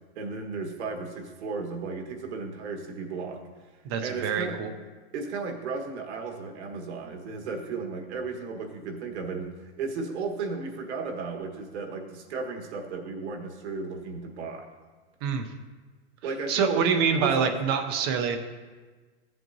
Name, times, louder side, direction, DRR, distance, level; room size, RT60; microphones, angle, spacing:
voice 1, 0.1-3.4 4.0-4.6 5.1-14.7 16.2-16.8 17.1-17.5, right 4 dB, 85° right, 3 dB, 1.4 m, -34 dB
voice 2, 3.8-4.7 15.2-15.5 16.5-18.4, right 6 dB, 25° right, 6 dB, 0.4 m, -25 dB
14.0 x 7.6 x 2.6 m, 1.4 s
supercardioid pair, 170°, 33 cm